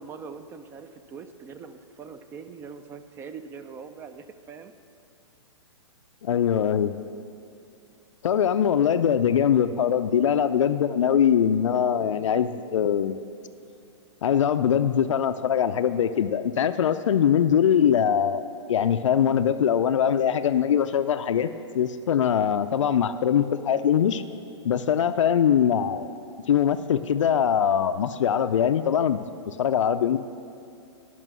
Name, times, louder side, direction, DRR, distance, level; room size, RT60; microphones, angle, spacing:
voice 1, 0.0-4.7, right 5 dB, 15° right, 9 dB, 0.4 m, -42 dB
voice 2, 6.2-7.0 8.2-13.2 14.2-18.4 18.7-24.2 24.6-26.1 26.5-30.2, left 8 dB, 90° left, 10 dB, 0.4 m, -22 dB
11.0 x 5.9 x 6.1 m, 2.5 s
hypercardioid pair, 145°, 16 cm